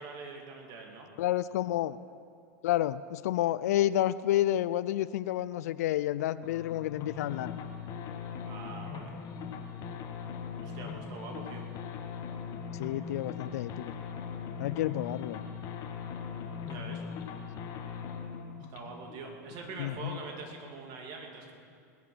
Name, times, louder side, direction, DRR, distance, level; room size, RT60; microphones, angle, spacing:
voice 1, 0.0-1.1 8.4-9.1 10.6-11.6 16.7-17.0 18.7-21.5, right 3 dB, 50° right, 2 dB, 2.6 m, -44 dB
voice 2, 1.2-2.0 2.6-7.5 12.8-13.9 14.6-15.4 19.8-20.2, left 13 dB, 70° left, 16 dB, 0.4 m, -30 dB
sound 1, 6.4-20.5, left 6 dB, 45° left, 1.5 m, -40 dB
20.5 x 8.3 x 6.1 m, 2.3 s
hypercardioid pair, 100°, 9 cm